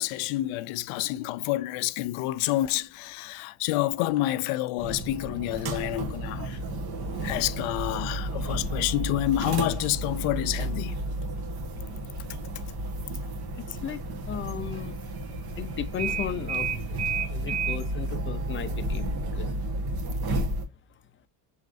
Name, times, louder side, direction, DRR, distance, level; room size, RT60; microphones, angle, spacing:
voice 1, 0.0-6.6 7.2-11.0, left 16 dB, 80° left, 0.6 m, -28 dB
sound 1, 4.8-20.7, right 2 dB, 50° right, 1.3 m, -32 dB
voice 2, 13.6-15.0 15.6-16.7 17.3-19.5, left 8 dB, 25° left, 0.5 m, -36 dB
6.5 x 3.1 x 2.5 m
supercardioid pair, 90°, 50 cm